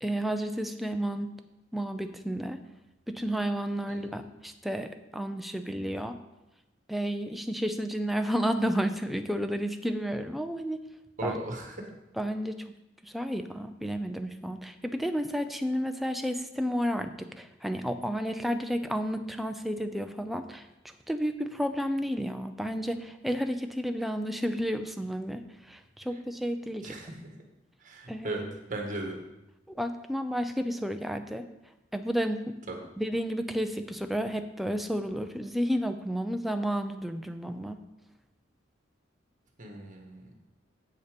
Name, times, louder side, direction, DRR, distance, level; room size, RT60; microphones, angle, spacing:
voice 1, 0.0-1.3 1.7-2.6 3.1-6.2 6.9-10.8 11.2-11.4 12.2-12.6 13.0-20.7 21.1-26.9 28.1-28.4 29.8-31.5 31.9-32.6 33.0-37.8, equal, ahead, 7 dB, 0.5 m, -31 dB
voice 2, 11.2-11.9 26.8-27.2 27.8-28.4 28.7-29.2 32.7-32.8 39.6-40.3, right 2 dB, 40° right, 2 dB, 1.6 m, -37 dB
8.1 x 6.8 x 5.2 m, 0.96 s
head